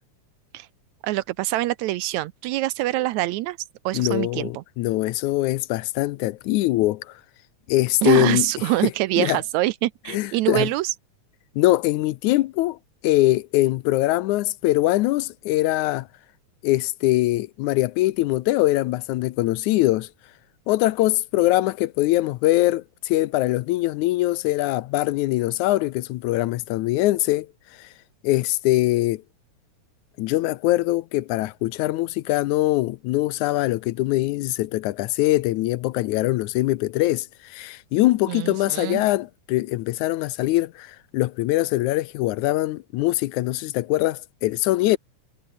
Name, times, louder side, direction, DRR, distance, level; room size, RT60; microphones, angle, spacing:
voice 1, 1.0-4.6 8.0-10.9 38.3-39.1, right 17 dB, 80° right, 1.8 m, -25 dB
voice 2, 3.9-7.1 7.7-8.5 9.2-9.4 10.1-10.7 11.6-12.8 13.0-16.1 16.6-20.1 20.7-27.5 27.8-27.9 28.2-29.2 30.2-45.0, left 17 dB, 80° left, 2.0 m, -22 dB
omnidirectional pair, 3.6 m